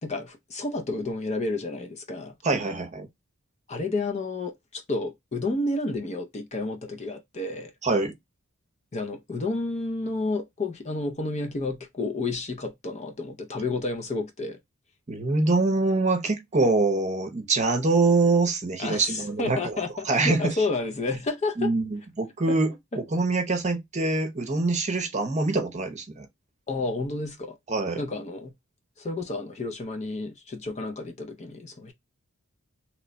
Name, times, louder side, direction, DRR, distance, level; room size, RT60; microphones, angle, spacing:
voice 1, 0.0-2.3 3.7-7.7 8.9-14.6 18.8-21.7 22.5-22.6 22.9-23.0 26.7-27.6 28.0-28.5 29.0-31.9, left 2 dB, 30° left, 0.5 m, -30 dB
voice 2, 2.4-3.1 7.8-8.1 15.1-19.8 20.1-20.5 21.6-26.3 27.7-28.0, right 3 dB, 35° right, 0.7 m, -24 dB
3.0 x 2.2 x 3.9 m
head